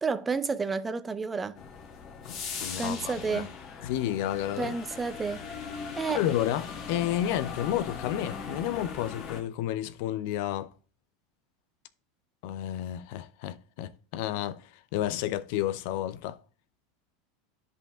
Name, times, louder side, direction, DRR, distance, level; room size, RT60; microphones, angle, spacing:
voice 1, 0.0-1.6 2.8-3.5 4.6-5.4 6.0-6.2, right 4 dB, 20° right, 0.7 m, -30 dB
sound 1, 1.6-9.4, left 5 dB, 45° left, 1.7 m, -40 dB
voice 2, 2.2-3.5 3.8-4.8 6.1-10.7 12.4-16.4, left 12 dB, 65° left, 0.5 m, -31 dB
10.5 x 5.2 x 3.6 m
hypercardioid pair, 110°, 0 cm